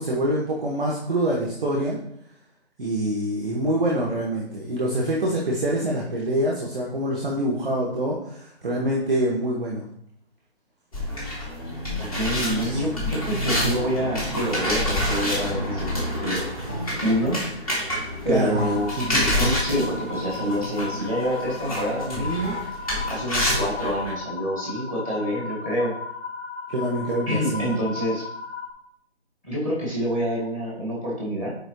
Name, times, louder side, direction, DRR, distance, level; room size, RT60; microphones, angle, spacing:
voice 1, 0.0-2.0 2.8-9.9 12.7-12.8 18.3-18.7 19.0-19.2 26.7-27.7, right 1 dB, 5° right, -4 dB, 0.6 m, -25 dB
sound 1, 10.9-24.1, left 1 dB, 35° left, 2.6 m, -28 dB
voice 2, 12.0-16.5 17.0-17.4 18.2-22.6 23.1-26.0 27.3-28.3 29.4-31.5, equal, 10° left, -5 dB, 1.7 m, -27 dB
sound 2, 18.6-28.7, left 5 dB, 85° left, 1.5 m, -35 dB
9.2 x 4.8 x 3.2 m, 0.70 s
figure-of-eight pair, 160°, 33 cm